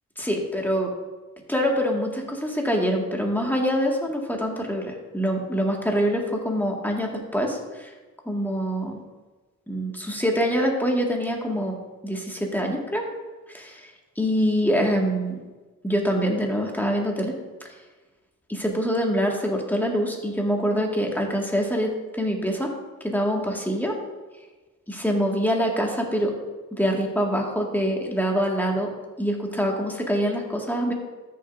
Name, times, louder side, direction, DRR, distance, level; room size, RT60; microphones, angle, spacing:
voice 1, 0.2-0.9 1.5-7.9 8.3-9.0 9.7-11.8 12.0-13.0 13.5-13.9 14.2-15.4 15.8-17.3 18.5-22.7 23.0-23.9 24.9-26.3 26.8-28.9 29.2-30.9, equal, 5° left, 0 dB, 1.8 m, -25 dB
14.0 x 6.7 x 2.6 m, 1.2 s
cardioid pair, 70°, 31 cm